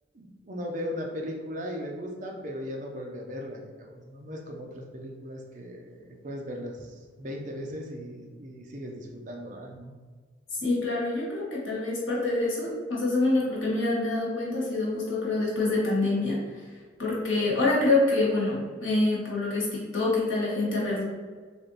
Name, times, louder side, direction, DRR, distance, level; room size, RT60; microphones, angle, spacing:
voice 1, 0.1-10.0, equal, 40° right, 1 dB, 0.5 m, -38 dB
voice 2, 10.6-16.6 17.0-21.0, left 2 dB, 85° left, -5 dB, 1.3 m, -26 dB
3.4 x 2.5 x 4.0 m, 1.5 s
head